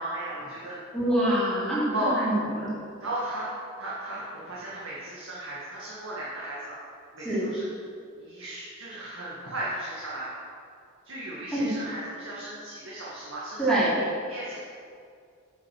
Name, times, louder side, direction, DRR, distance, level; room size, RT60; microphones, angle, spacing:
voice 1, 0.0-0.7 1.9-2.2 3.0-3.5 3.8-6.8 7.1-7.7 8.2-10.3 11.0-13.7 14.3-14.6, right 1 dB, 65° right, -7 dB, 1.9 m, -35 dB
voice 2, 0.9-2.7 7.2-7.5 11.5-11.7 13.6-14.0, right 1 dB, 5° left, -11 dB, 2.9 m, -25 dB
9.5 x 6.3 x 6.0 m, 2.3 s
head